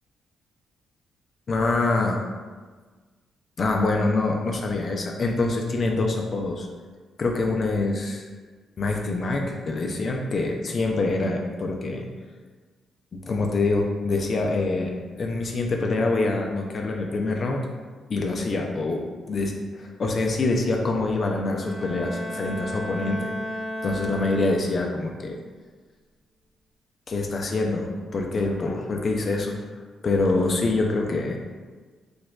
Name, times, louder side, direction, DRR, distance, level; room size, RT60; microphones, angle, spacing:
voice 1, 1.5-2.2 3.6-6.7 7.2-8.2 8.8-12.1 13.1-14.9 15.2-17.6 18.1-23.3 23.8-25.4 27.1-29.5 30.0-31.4, left 3 dB, 40° left, 1 dB, 0.3 m, -25 dB
Bowed string instrument, 21.5-25.0, equal, 20° left, 1.1 m, -34 dB
4.7 x 2.2 x 2.3 m, 1.4 s
cardioid pair, 120°, 0 cm